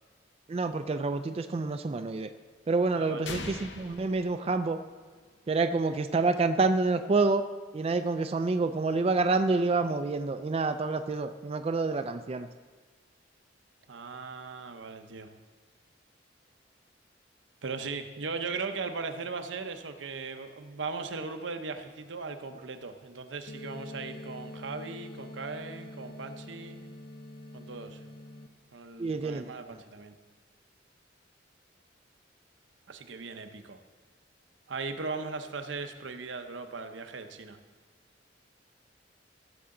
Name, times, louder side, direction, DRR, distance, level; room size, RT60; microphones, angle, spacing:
voice 1, 0.5-2.3 2.7-4.8 5.5-7.4 7.7-12.5 29.0-29.5, right 3 dB, 30° right, 8 dB, 0.3 m, -28 dB
voice 2, 2.9-3.3 13.9-15.3 17.6-26.8 27.5-28.0 28.7-30.1 32.9-33.8 34.7-37.6, right 4 dB, 85° right, 7 dB, 0.8 m, -38 dB
sound 1, 3.3-5.2, left 3 dB, 75° left, 0.9 m, -41 dB
sound 2, 23.5-28.5, left 1 dB, 50° left, 0.7 m, -45 dB
15.5 x 6.9 x 3.8 m, 1.5 s
head